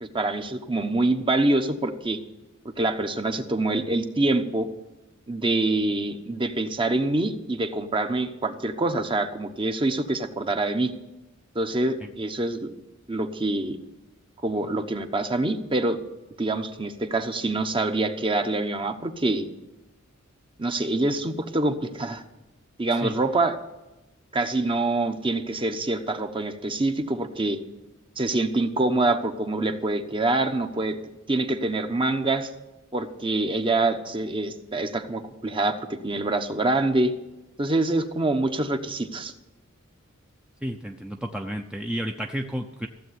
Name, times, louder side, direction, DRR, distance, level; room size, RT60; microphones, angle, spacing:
voice 1, 0.0-2.2 2.8-4.7 5.3-10.9 11.5-12.7 13.1-13.8 14.4-16.0 16.4-19.5 20.6-22.2 22.8-23.6 24.3-27.6 28.2-31.0 31.3-32.5 32.9-37.1 37.6-39.3, right 2 dB, 25° right, 7 dB, 1.0 m, -25 dB
voice 2, 40.6-42.9, equal, 5° right, 3 dB, 0.7 m, -31 dB
15.5 x 7.9 x 9.5 m, 1.0 s
head